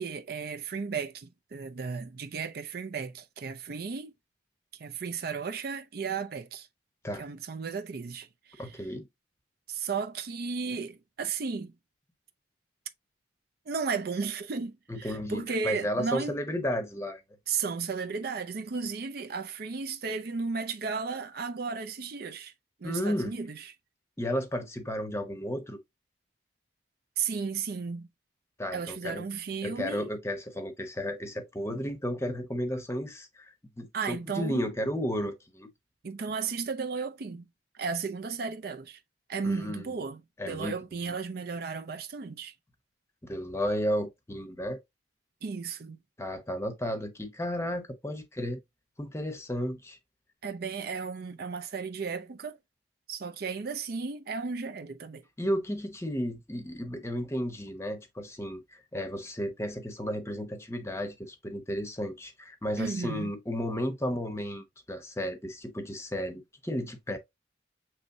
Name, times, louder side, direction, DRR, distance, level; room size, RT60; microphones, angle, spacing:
voice 1, 0.0-4.1 4.8-6.7 7.1-8.8 9.7-11.7 13.7-16.4 17.5-22.5 22.8-23.7 27.2-28.1 28.7-30.1 33.9-34.7 36.0-37.5 37.7-39.0 39.3-42.5 45.4-46.0 50.4-52.6 53.1-55.2 62.8-63.3, right 5 dB, 55° right, 0.5 m, -34 dB
voice 2, 8.6-9.1 14.9-17.2 22.8-23.3 24.2-25.8 28.6-29.2 29.6-35.7 39.4-40.0 40.4-40.7 41.1-41.2 43.2-44.8 46.2-48.6 49.0-50.0 55.4-67.2, equal, 15° left, 0.8 m, -33 dB
6.5 x 3.1 x 2.6 m
head